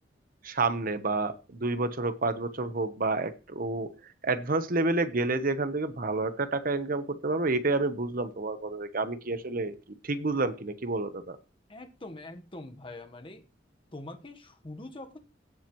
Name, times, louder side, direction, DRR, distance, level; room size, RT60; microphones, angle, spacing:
voice 1, 0.4-3.9 4.2-9.7 10.0-11.4, right 3 dB, 50° right, 1.0 m, -29 dB
voice 2, 11.7-13.4 13.9-15.2, left 2 dB, 30° left, 1.2 m, -43 dB
16.5 x 7.4 x 3.1 m
head